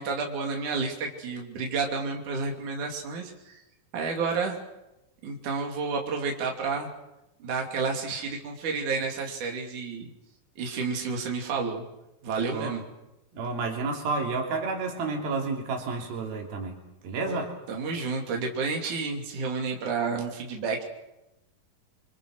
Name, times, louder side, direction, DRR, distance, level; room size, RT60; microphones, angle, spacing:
voice 1, 0.0-3.6 3.9-4.6 5.2-6.9 7.4-10.1 10.6-11.8 12.2-12.8 17.2-17.4 17.7-20.8, right 4 dB, 60° right, 1 dB, 4.3 m, -30 dB
voice 2, 13.3-16.8 17.0-17.5, right 3 dB, 90° right, 2 dB, 5.0 m, -30 dB
27.5 x 25.0 x 6.3 m, 0.91 s
omnidirectional pair, 4.1 m